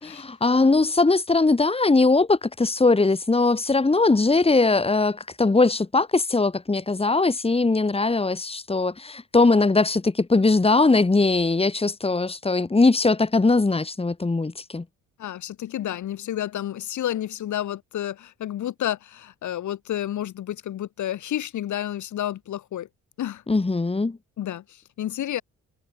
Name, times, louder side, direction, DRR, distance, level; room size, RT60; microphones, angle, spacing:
voice 1, 0.0-14.8 23.5-24.2, left 3 dB, 20° left, 3.4 m, -20 dB
voice 2, 15.2-22.9 23.2-23.4 24.4-24.6 25.0-25.4, left 12 dB, 75° left, 4.8 m, -30 dB
cardioid pair, 90°, 30 cm